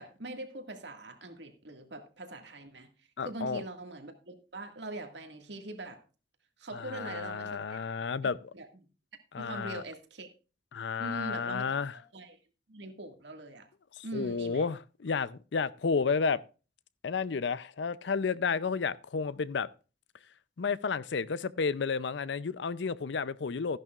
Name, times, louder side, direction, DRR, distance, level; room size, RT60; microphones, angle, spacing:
voice 1, 0.0-2.9 3.2-6.0 6.6-7.8 8.2-8.7 9.4-10.3 11.0-12.4 12.7-13.7 14.0-14.7, right 2 dB, 70° right, 1.9 m, -42 dB
voice 2, 3.2-3.6 6.7-8.4 9.3-9.8 10.7-12.0 14.0-16.4 17.0-19.7 20.6-23.8, left 5 dB, 70° left, 0.5 m, -31 dB
14.0 x 11.0 x 2.4 m
head